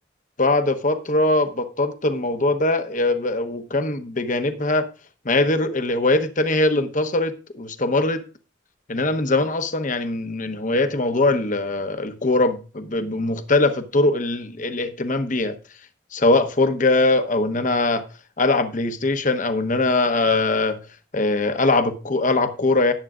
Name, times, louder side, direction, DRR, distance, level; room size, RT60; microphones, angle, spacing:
voice 1, 0.4-4.8 5.2-8.2 8.9-15.5 16.1-18.0 18.4-20.8 21.1-22.9, left 2 dB, 40° left, 1.0 m, -21 dB
18.5 x 8.3 x 2.5 m
head